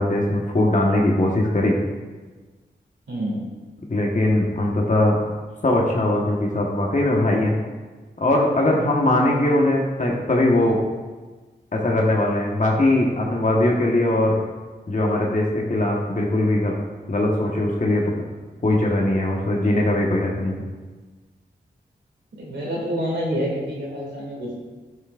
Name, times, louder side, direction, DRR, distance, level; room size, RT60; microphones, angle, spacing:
voice 1, 0.0-1.8 3.9-5.2 5.6-7.5 8.2-10.8 11.7-14.4 14.9-16.7 17.1-18.0 18.6-20.6, left 1 dB, 45° left, -2 dB, 1.4 m, -20 dB
voice 2, 3.1-3.4 22.4-24.6, equal, 85° right, -6 dB, 2.6 m, -27 dB
12.5 x 5.8 x 2.5 m, 1.3 s
cardioid pair, 40°, 18 cm